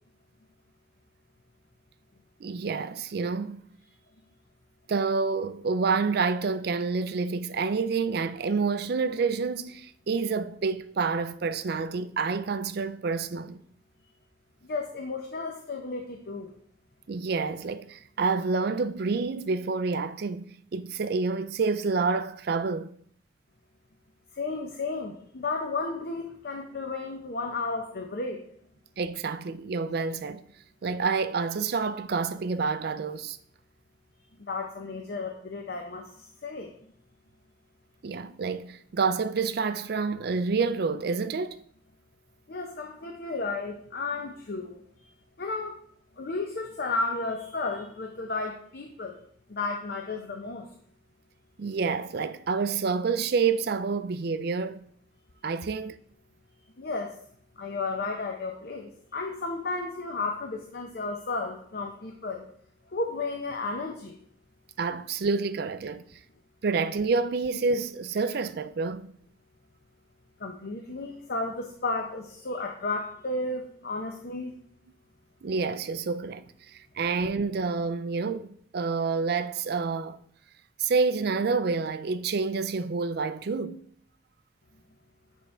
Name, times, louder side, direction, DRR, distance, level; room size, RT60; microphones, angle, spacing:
voice 1, 2.4-3.6 4.9-13.6 17.1-22.9 29.0-30.4 30.8-33.4 38.0-41.6 51.6-54.8 55.4-56.0 64.8-66.0 66.6-69.1 75.4-76.4 77.0-80.2 80.8-83.8, right 4 dB, 55° right, 0.4 m, -28 dB
voice 2, 14.7-16.5 24.3-28.5 34.5-36.7 42.5-44.8 45.4-45.8 46.2-49.2 49.5-50.7 56.8-57.2 57.6-62.5 62.9-64.2 70.4-74.5, left 3 dB, 55° left, 0.7 m, -33 dB
9.1 x 3.6 x 4.2 m
head